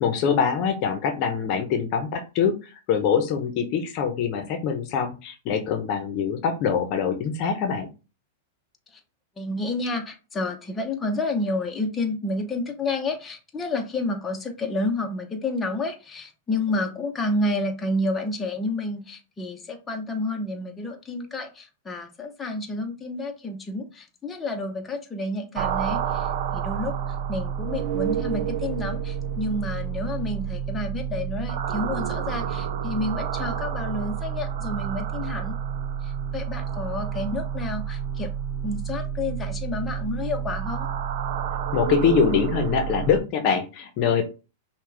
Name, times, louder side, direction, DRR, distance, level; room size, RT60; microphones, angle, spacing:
voice 1, 0.0-2.5 2.9-7.9 41.7-44.2, left 7 dB, 50° left, 6 dB, 0.8 m, -24 dB
voice 2, 9.4-26.9 27.3-35.5 36.0-38.3 38.6-40.9, left 2 dB, 15° left, 2 dB, 0.9 m, -30 dB
sound 1, 25.6-43.2, right 8 dB, 65° right, 0.5 m, -29 dB
5.7 x 2.4 x 3.3 m, 0.32 s
hypercardioid pair, 110°, 0 cm